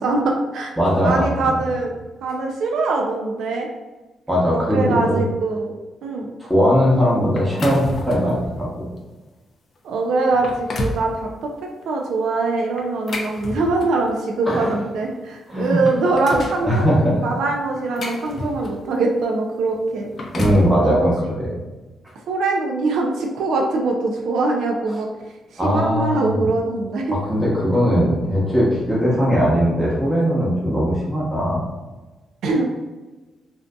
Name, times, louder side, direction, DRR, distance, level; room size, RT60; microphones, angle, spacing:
voice 1, 0.0-0.7 1.0-1.9 2.2-3.7 4.5-5.7 6.0-6.3 9.8-11.1 11.4-11.5 11.9-16.9 17.2-20.1 20.8-21.1 21.4-21.5 22.3-25.1 25.5-27.1 32.4-32.8, right 3 dB, 80° right, 1 dB, 0.3 m, -22 dB
voice 2, 0.8-1.3 4.3-5.2 6.4-8.9 14.5-14.7 15.5-15.8 16.6-17.2 20.3-21.1 25.6-26.4 27.1-31.6, equal, ahead, -8 dB, 0.8 m, -19 dB
sound 1, 7.4-8.4 9.0-9.1 9.8-9.9 10.3-11.1 12.8-14.1 15.2-15.3 15.6-16.6 17.5-18.9 19.9-20.7, left 1 dB, 50° left, 0.4 m, -30 dB
2.5 x 2.5 x 2.2 m, 1.2 s
cardioid pair, 95°, 0 cm